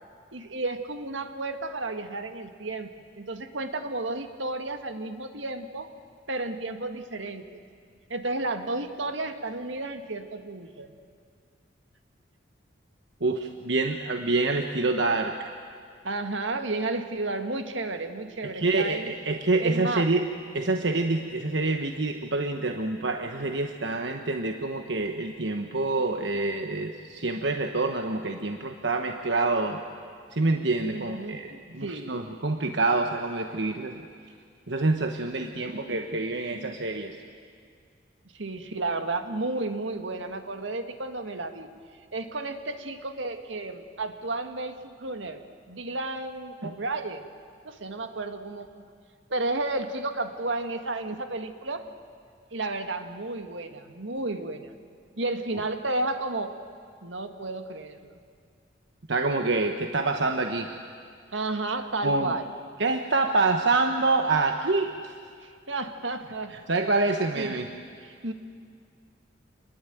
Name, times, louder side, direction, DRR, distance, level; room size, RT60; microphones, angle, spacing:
voice 1, 0.3-2.9 3.2-5.9 6.3-7.6 8.1-10.9 16.0-19.1 19.6-20.1 30.9-32.1 38.3-41.7 42.1-45.4 45.7-47.2 47.7-48.7 49.3-51.9 52.5-54.7 55.2-56.6 57.0-58.2 61.3-62.5 65.4-66.6 67.0-67.6 68.0-68.3, right 2 dB, 85° right, 7 dB, 1.8 m, -32 dB
voice 2, 13.2-15.5 18.4-20.2 20.5-29.8 30.3-34.0 34.7-37.2 46.6-46.7 59.1-60.7 62.0-62.3 62.8-65.1 66.7-67.7, right 3 dB, 70° right, 5 dB, 1.2 m, -26 dB
27.5 x 21.0 x 9.2 m, 2.2 s
head